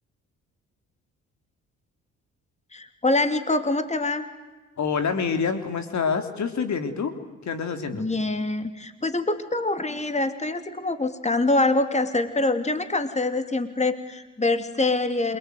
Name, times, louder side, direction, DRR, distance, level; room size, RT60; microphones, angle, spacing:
voice 1, 2.7-4.2 7.9-15.4, left 2 dB, 20° left, 9 dB, 3.0 m, -25 dB
voice 2, 4.8-7.1 7.4-8.1, left 6 dB, 60° left, 7 dB, 3.1 m, -26 dB
27.5 x 23.0 x 9.4 m, 1.2 s
supercardioid pair, 55°, 31 cm